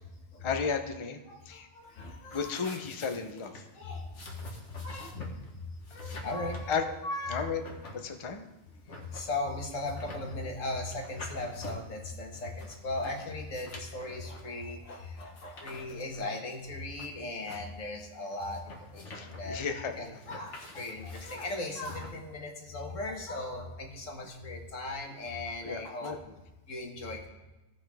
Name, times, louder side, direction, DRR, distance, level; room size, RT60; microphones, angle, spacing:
voice 1, 0.4-1.7 2.3-3.6 6.7-6.8 7.3-7.6 7.9-8.4 19.1-20.2 21.2-21.3 25.6-26.2, left 6 dB, 30° left, 5 dB, 0.6 m, -34 dB
voice 2, 1.3-2.5 3.7-5.3 5.5-7.5 8.9-19.6 20.0-26.2 26.7-27.3, left 2 dB, 85° left, 2 dB, 1.7 m, -38 dB
sound 1, 2.3-22.1, left 2 dB, 65° left, 1.8 m, -47 dB
16.5 x 6.2 x 3.5 m, 1.1 s
omnidirectional pair, 1.3 m